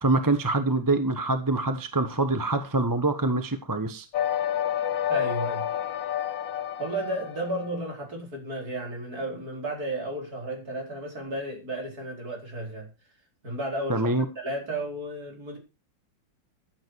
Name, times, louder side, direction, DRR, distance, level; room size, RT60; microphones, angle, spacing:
voice 1, 0.0-4.1 13.9-14.2, right 2 dB, 15° right, 9 dB, 1.0 m, -25 dB
sound 1, 4.1-7.8, left 10 dB, 70° left, 1.9 m, -29 dB
voice 2, 5.1-5.7 6.8-12.9 13.4-14.1 14.4-15.6, right 1 dB, 50° right, 1 dB, 5.1 m, -33 dB
15.0 x 9.0 x 4.7 m, 0.29 s
omnidirectional pair, 2.1 m